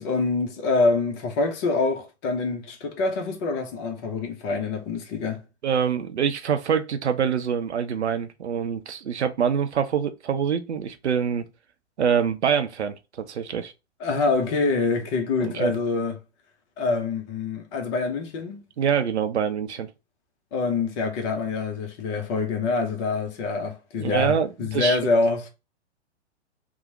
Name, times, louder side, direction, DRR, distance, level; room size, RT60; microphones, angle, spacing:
voice 1, 0.0-5.4 14.0-16.2 16.8-18.6 20.5-25.5, left 3 dB, 25° left, 0.5 m, -25 dB
voice 2, 5.6-11.5 12.0-13.7 15.4-15.7 18.8-19.9 23.9-25.2, right 7 dB, 75° right, 0.5 m, -25 dB
2.9 x 2.0 x 2.5 m
figure-of-eight pair, 110°, 34 cm